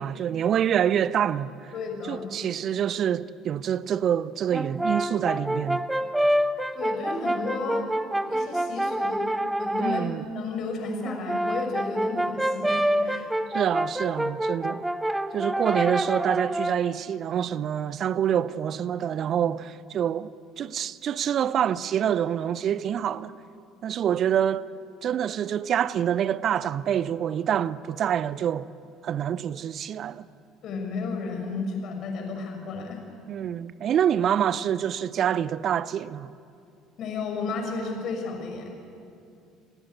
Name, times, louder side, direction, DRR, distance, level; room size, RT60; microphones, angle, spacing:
voice 1, 0.0-1.7 2.1-5.9 9.8-10.2 13.5-14.8 15.3-20.3 20.6-23.4 23.8-24.7 25.0-28.7 29.0-30.3 33.3-36.3, right 9 dB, 45° right, 0.7 m, -26 dB
voice 2, 1.7-2.3 6.7-7.9 8.3-9.3 9.6-13.3 30.6-33.0 37.0-38.7, left 3 dB, 50° left, 6.3 m, -32 dB
Brass instrument, 4.5-10.1 11.0-16.9, right 1 dB, 10° right, 1.2 m, -27 dB
29.5 x 20.0 x 8.6 m
figure-of-eight pair, 55°, 0 cm